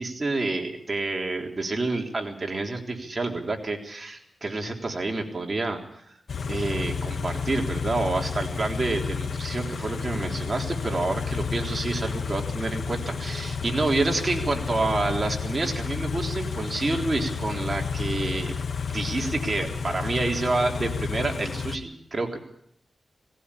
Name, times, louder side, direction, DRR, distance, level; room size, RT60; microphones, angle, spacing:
voice 1, 0.0-5.8 6.5-18.5 18.9-22.4, right 2 dB, 40° right, 2 dB, 3.6 m, -28 dB
Car / Idling, 6.3-21.8, left 5 dB, 75° left, 1.4 m, -31 dB
19.0 x 16.5 x 8.5 m, 0.70 s
cardioid pair, 70°, 0 cm